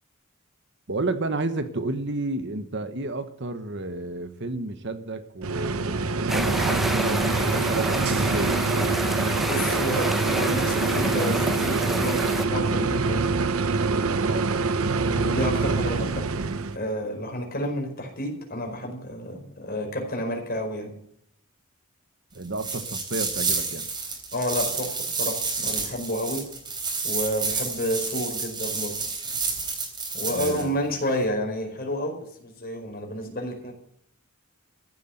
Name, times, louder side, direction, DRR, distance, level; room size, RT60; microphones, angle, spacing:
voice 1, 0.9-8.6 14.2-14.8 22.3-23.9 30.3-30.8, right 2 dB, 55° right, 10 dB, 1.2 m, -31 dB
sound 1, 5.4-16.8, right 4 dB, 75° right, 0.9 m, -25 dB
sound 2, 6.3-12.5, equal, ahead, 0.8 m, -29 dB
voice 2, 9.4-13.3 15.1-16.3 16.7-20.9 24.3-26.5 27.0-29.1 30.1-33.8, equal, 45° left, 3 dB, 4.7 m, -30 dB
sound 3, 22.5-30.6, right 4 dB, 20° right, 3.5 m, -30 dB
15.0 x 8.3 x 9.4 m, 0.68 s
head